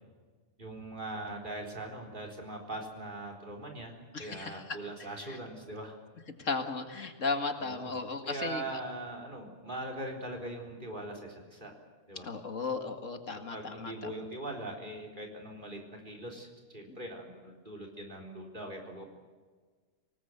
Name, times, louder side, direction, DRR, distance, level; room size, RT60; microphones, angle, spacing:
voice 1, 0.6-6.0 7.6-8.0 8.2-11.7 12.1-12.3 13.5-16.5 16.7-19.1, right 1 dB, 40° right, 1 dB, 4.2 m, -41 dB
voice 2, 4.1-4.8 5.3-5.4 6.4-8.6 12.2-14.1 16.9-17.0, left 4 dB, 80° left, 7 dB, 2.3 m, -35 dB
25.0 x 19.5 x 8.1 m, 1.5 s
omnidirectional pair, 1.3 m